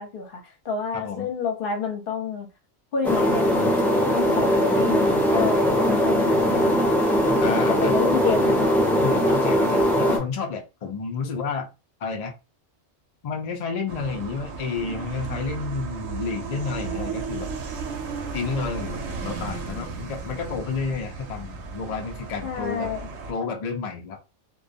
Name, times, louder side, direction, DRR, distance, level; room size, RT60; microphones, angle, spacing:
voice 1, 0.0-2.5 2.9-3.9 4.1-6.9 7.5-8.8 22.4-23.1, left 5 dB, 50° left, 0.8 m, -29 dB
voice 2, 0.9-1.3 3.1-3.3 7.4-8.0 9.0-11.7 12.0-12.3 13.2-17.5 18.3-22.9 23.3-24.2, left 5 dB, 85° left, 0.3 m, -30 dB
sound 1, 3.0-10.2, equal, ahead, 0.4 m, -20 dB
sound 2, 13.9-23.3, right 5 dB, 70° right, 0.8 m, -34 dB
2.2 x 2.2 x 2.5 m
omnidirectional pair, 1.3 m